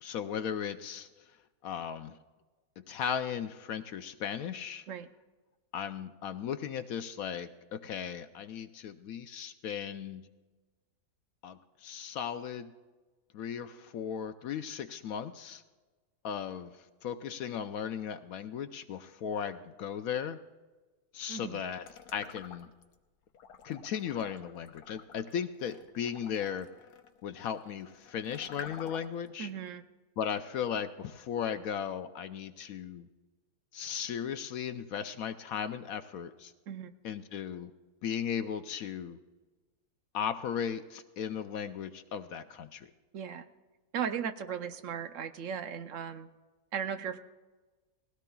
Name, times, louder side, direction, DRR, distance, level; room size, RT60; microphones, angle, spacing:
voice 1, 0.0-1.1 1.6-2.1 2.8-4.8 5.7-10.3 11.4-12.7 13.3-15.6 16.2-16.7 17.0-20.4 21.1-21.8 22.1-22.7 23.6-26.7 27.2-29.5 30.2-33.1 33.7-36.5 37.0-37.7 38.0-39.2 40.1-42.9, left 8 dB, 70° left, 10 dB, 1.0 m, -36 dB
voice 2, 21.3-21.6 29.4-29.8 36.7-36.9 43.1-43.5 43.9-46.3 46.7-47.2, right 8 dB, 60° right, 10 dB, 0.9 m, -36 dB
sound 1, 21.8-22.9 23.3-29.3, left 7 dB, 85° left, 1.4 m, -49 dB
20.0 x 16.5 x 2.3 m, 1.3 s
omnidirectional pair, 1.7 m